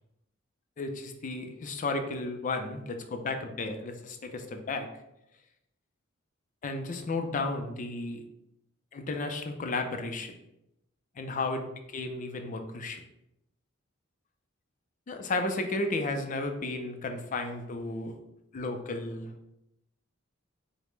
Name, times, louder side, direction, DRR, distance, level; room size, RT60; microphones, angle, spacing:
voice 1, 0.8-4.9 6.6-8.2 8.9-10.3 11.2-13.0 15.1-18.2 18.5-19.3, left 2 dB, 40° left, 6 dB, 0.4 m, -33 dB
4.8 x 2.1 x 3.1 m, 0.85 s
head